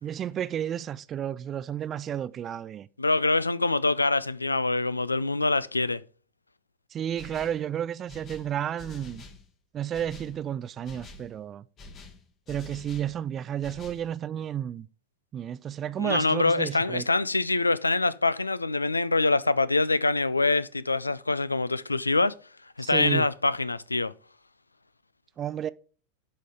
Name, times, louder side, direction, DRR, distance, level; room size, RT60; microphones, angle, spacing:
voice 1, 0.0-2.9 6.9-9.2 9.7-11.6 12.5-14.9 15.3-17.1 22.8-23.3 25.4-25.7, right 10 dB, 25° right, 0.3 m, -32 dB
voice 2, 3.0-6.0 16.0-22.4 22.8-24.1, left 3 dB, 80° left, 0.3 m, -25 dB
sound 1, 7.2-7.7 8.1-9.5 9.9-10.4 10.8-11.3 11.8-13.1 13.6-14.1, left 2 dB, 30° left, 1.2 m, -46 dB
11.5 x 3.8 x 4.9 m
figure-of-eight pair, 90°, 0 cm